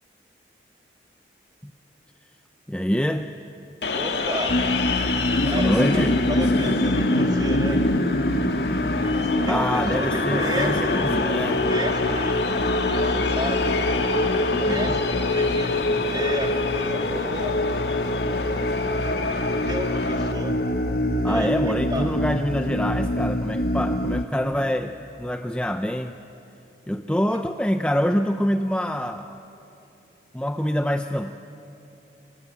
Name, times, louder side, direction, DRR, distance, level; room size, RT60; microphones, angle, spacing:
voice 1, 2.7-3.4 5.5-6.2 9.4-11.7 14.5-15.0 21.2-26.2 26.9-29.4 30.3-31.4, equal, 5° left, 7 dB, 0.5 m, -25 dB
sound 1, 3.8-20.3, left 2 dB, 80° left, 1.8 m, -26 dB
voice 2, 3.9-4.6 5.4-7.9 9.0-11.0 11.7-12.4 12.8-14.0 14.5-17.6 19.0-19.1 19.5-20.6 21.2-22.1 27.1-27.4, right 1 dB, 25° right, 2 dB, 2.6 m, -33 dB
sound 2, 4.5-24.2, left 1 dB, 60° left, 1.1 m, -25 dB
26.5 x 23.5 x 9.4 m, 2.9 s
head